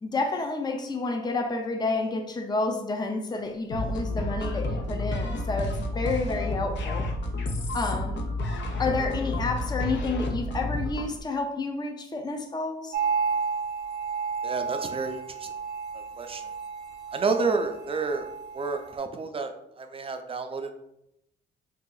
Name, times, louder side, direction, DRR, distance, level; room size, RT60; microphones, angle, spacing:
voice 1, 0.0-7.1 7.7-8.3 8.8-13.0, left 3 dB, 20° left, 4 dB, 0.5 m, -30 dB
sound 1, 3.7-11.1, left 1 dB, 65° left, 0.6 m, -30 dB
sound 2, 12.9-19.0, right 5 dB, 60° right, 0.7 m, -32 dB
voice 2, 14.4-15.5 15.9-16.5 17.1-19.5 19.8-20.7, right 4 dB, 30° right, 6 dB, 0.5 m, -30 dB
2.9 x 2.8 x 3.8 m, 0.81 s
cardioid pair, 90°, 20 cm